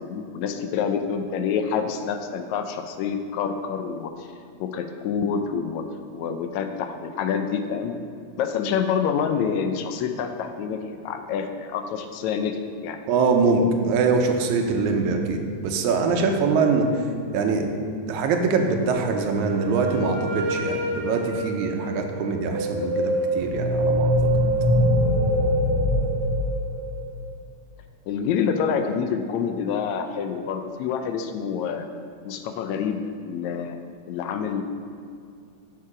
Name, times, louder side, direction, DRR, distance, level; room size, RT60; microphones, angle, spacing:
voice 1, 0.0-4.3 4.6-5.8 6.1-8.0 8.4-13.0 28.1-31.9 32.3-33.8 34.1-34.6, left 7 dB, 80° left, 7 dB, 1.9 m, -27 dB
voice 2, 13.1-16.9 17.3-17.6 18.1-24.2, right 4 dB, 80° right, 4 dB, 2.2 m, -23 dB
Wind instrument woodwind instrument, 18.9-22.8, left 1 dB, 45° right, 2.6 m, -32 dB
sound 1, 22.5-27.1, equal, 10° right, 2.0 m, -22 dB
8.5 x 7.2 x 4.9 m, 2.3 s
omnidirectional pair, 3.4 m